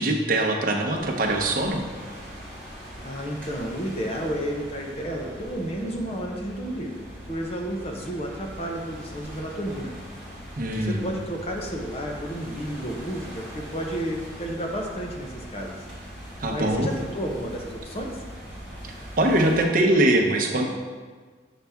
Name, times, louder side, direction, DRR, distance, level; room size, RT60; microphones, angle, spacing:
voice 1, 0.0-1.8 10.6-11.1 16.4-16.9 19.2-20.7, right 1 dB, 50° right, 2 dB, 0.8 m, -22 dB
sound 1, 0.9-19.7, equal, 5° left, 2.2 m, -41 dB
voice 2, 3.0-7.0 7.3-10.0 10.7-15.8 16.5-18.2, equal, 35° left, 1 dB, 0.8 m, -31 dB
7.0 x 5.6 x 3.5 m, 1.5 s
head